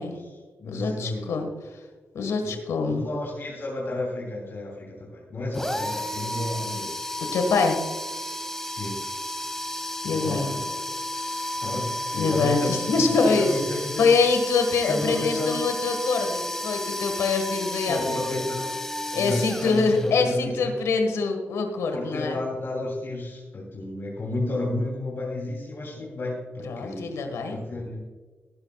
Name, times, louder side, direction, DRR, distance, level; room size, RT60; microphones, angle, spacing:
voice 1, 0.0-1.4 2.4-2.6 2.9-7.0 8.7-9.0 10.1-11.0 11.6-14.1 14.8-15.7 17.9-18.8 19.1-20.7 21.9-27.1 27.5-28.0, left 2 dB, 55° left, -2 dB, 3.1 m, -32 dB
voice 2, 0.6-1.5 2.1-3.1 7.3-7.8 10.0-10.5 12.1-13.5 14.0-18.0 19.1-22.4 26.6-27.6, left 4 dB, 90° left, 5 dB, 1.6 m, -24 dB
sound 1, 5.5-20.4, left 1 dB, 10° left, 1.7 m, -33 dB
18.5 x 10.0 x 2.4 m, 1.4 s
cardioid pair, 75°, 5 cm